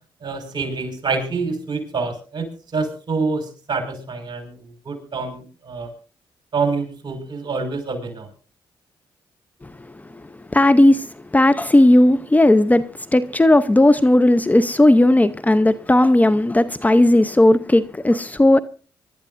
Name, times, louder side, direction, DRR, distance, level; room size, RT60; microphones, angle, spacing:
voice 1, 0.2-2.5 2.7-4.6 4.8-5.9 6.5-8.3, right 4 dB, 50° right, 5.3 m, -26 dB
voice 2, 10.5-18.6, left 1 dB, 15° left, 0.8 m, -15 dB
24.5 x 12.5 x 2.6 m
supercardioid pair, 65°, 9 cm